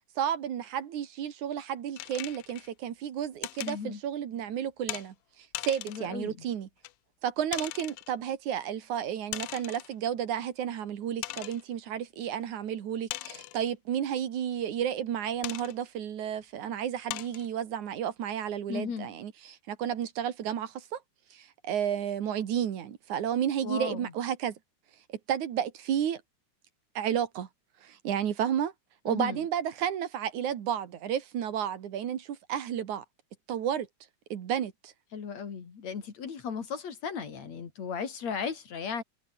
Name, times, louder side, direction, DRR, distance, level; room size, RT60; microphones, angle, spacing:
voice 1, 0.2-5.1 5.6-6.7 7.2-21.0 21.3-24.5 25.1-26.2 26.9-27.5 27.8-28.7 29.0-33.0 33.5-33.9 34.3-34.9, right 9 dB, 75° right, 3.2 m, -32 dB
sound 1, 2.0-2.7 3.4-3.8 4.9-5.1 5.5-6.1 6.8-6.9 7.5-8.1 9.3-9.9 10.5-10.6 11.2-11.6 13.1-13.7 15.4-15.7 16.4-16.5 17.1-17.5, left 17 dB, 90° left, 1.3 m, -38 dB
voice 2, 3.6-4.0 5.9-6.4 18.7-19.1 23.6-24.1 29.1-29.4 35.1-39.0, left 6 dB, 60° left, 4.1 m, -36 dB
omnidirectional pair, 3.5 m